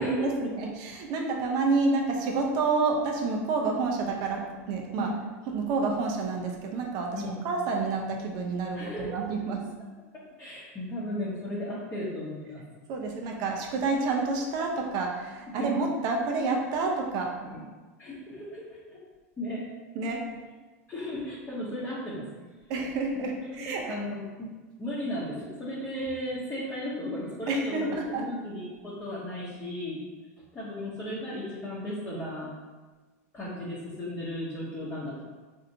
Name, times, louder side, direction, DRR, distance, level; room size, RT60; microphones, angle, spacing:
voice 1, 0.0-5.1 5.5-8.8 9.1-9.6 12.9-17.3 19.9-20.2 22.7-23.8 27.5-28.2, right 3 dB, 55° right, 1 dB, 0.7 m, -29 dB
voice 2, 8.7-9.2 10.4-12.6 15.5-15.7 17.4-17.6 18.0-19.0 19.4-19.7 20.9-22.3 23.5-24.5 24.8-30.0 30.5-32.5 33.3-35.2, left 1 dB, 20° left, -8 dB, 0.9 m, -35 dB
4.0 x 2.7 x 2.7 m, 1.3 s
hypercardioid pair, 110°, 8 cm